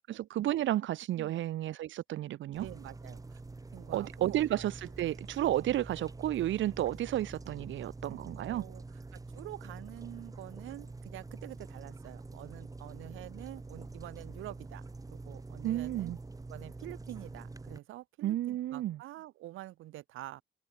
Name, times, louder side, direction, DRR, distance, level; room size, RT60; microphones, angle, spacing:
voice 1, 0.1-2.7 3.9-8.6 15.6-16.2 18.2-19.0, right 13 dB, 75° right, 1.0 m, -32 dB
sound 1, 2.5-17.8, right 3 dB, 15° right, 1.4 m, -46 dB
voice 2, 2.6-3.4 3.7-4.4 8.4-8.8 9.1-16.1 16.5-20.4, right 15 dB, 90° right, 7.7 m, -47 dB
cardioid pair, 90°, 20 cm